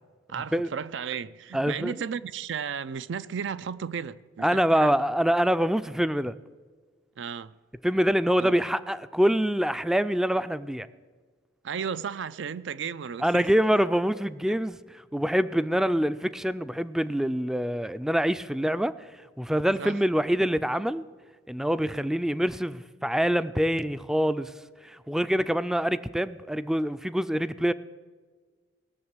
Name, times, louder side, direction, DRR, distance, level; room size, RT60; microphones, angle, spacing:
voice 1, 0.3-4.9 7.2-7.6 8.4-8.5 11.6-13.5 19.8-20.0, right 7 dB, 70° right, 0.4 m, -34 dB
voice 2, 1.5-1.9 4.4-6.3 7.8-10.9 13.2-14.8 15.1-19.0 19.4-21.0 21.5-24.5 24.8-27.7, equal, 5° right, 0.3 m, -25 dB
18.5 x 6.7 x 8.0 m
head